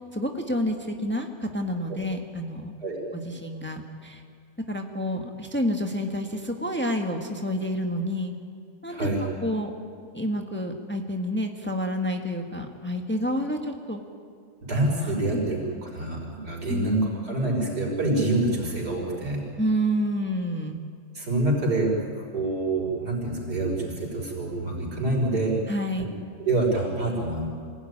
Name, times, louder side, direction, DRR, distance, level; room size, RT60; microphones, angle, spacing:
voice 1, 0.1-2.7 3.1-4.2 4.7-8.3 8.8-9.1 9.4-9.7 10.1-14.0 16.7-16.9 19.6-20.8 25.7-26.1, equal, 5° left, 3 dB, 1.5 m, -29 dB
voice 2, 8.9-9.2 14.6-19.4 21.1-25.6 26.0-26.1 26.4-27.5, right 2 dB, 90° right, -1 dB, 6.0 m, -26 dB
25.5 x 16.5 x 9.9 m, 2.2 s
omnidirectional pair, 1.7 m